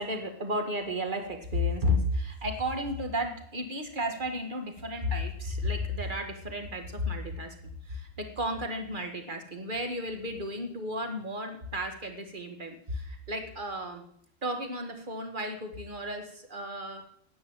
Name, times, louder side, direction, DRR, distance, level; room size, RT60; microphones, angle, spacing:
voice 1, 0.0-14.0 14.4-17.0, left 1 dB, 35° right, 5 dB, 2.0 m, -33 dB
10.0 x 8.9 x 9.1 m, 0.67 s
omnidirectional pair, 1.5 m